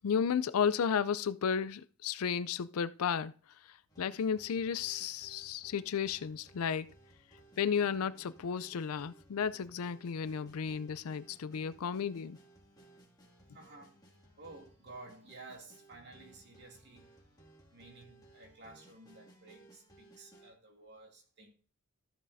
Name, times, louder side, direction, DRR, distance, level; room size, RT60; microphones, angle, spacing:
voice 1, 0.0-3.3 4.0-6.9 7.6-12.4, left 7 dB, 90° left, 0.4 m, -33 dB
sound 1, 3.9-20.5, right 2 dB, 20° left, 2.2 m, -61 dB
voice 2, 13.5-14.0 14.4-17.1 17.7-21.5, right 2 dB, 55° right, 2.5 m, -53 dB
13.5 x 7.3 x 2.7 m
head